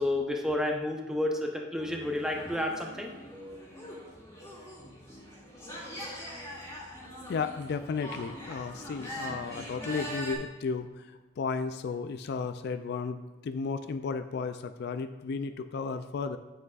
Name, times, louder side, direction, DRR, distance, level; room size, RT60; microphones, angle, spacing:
voice 1, 0.0-3.6, left 1 dB, 5° right, 1 dB, 0.8 m, -31 dB
sound 1, 1.8-10.4, equal, 15° left, 2.3 m, -42 dB
voice 2, 7.3-16.4, left 5 dB, 55° left, 10 dB, 0.3 m, -34 dB
9.4 x 7.9 x 2.4 m, 1.3 s
head